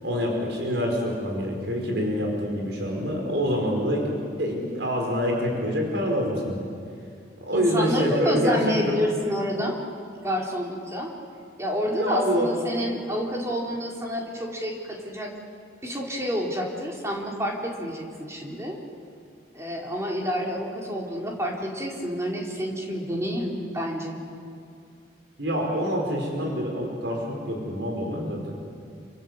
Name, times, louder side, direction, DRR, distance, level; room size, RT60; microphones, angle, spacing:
voice 1, 0.0-4.1 4.4-6.6 7.4-9.0 12.0-12.5 25.4-28.5, equal, 75° right, 0 dB, 5.1 m, -26 dB
voice 2, 7.5-9.8 10.2-11.1 11.6-15.3 15.8-18.8 19.5-24.2, equal, 15° right, -1 dB, 3.9 m, -28 dB
28.0 x 26.0 x 8.1 m, 2.3 s
head